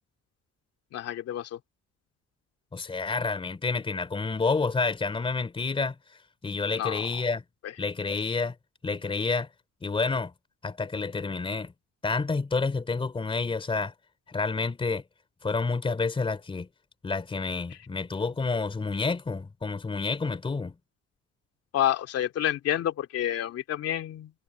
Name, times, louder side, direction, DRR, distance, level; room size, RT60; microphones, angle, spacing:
voice 1, 0.9-1.6 6.7-7.2 7.6-7.7 21.7-24.3, left 11 dB, 55° left, 2.6 m, -29 dB
voice 2, 2.7-6.0 6.4-7.4 7.8-8.5 8.8-9.5 9.8-10.3 10.6-11.7 12.0-13.9 14.3-15.0 15.4-16.7 17.0-20.7, left 4 dB, 20° left, 3.0 m, -29 dB
cardioid pair, 140°, 29 cm